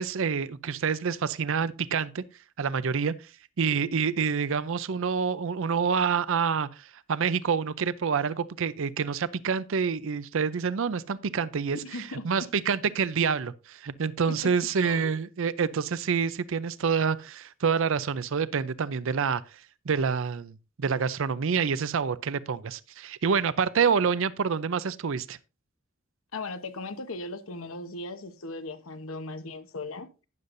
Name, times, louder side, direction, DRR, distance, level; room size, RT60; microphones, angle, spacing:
voice 1, 0.0-2.2 2.6-3.3 3.6-19.6 19.9-25.4, right 6 dB, 70° right, 0.5 m, -27 dB
voice 2, 11.8-12.5 14.3-14.5 14.8-15.2 26.3-30.1, left 2 dB, 80° left, 1.0 m, -38 dB
12.0 x 9.7 x 2.6 m
head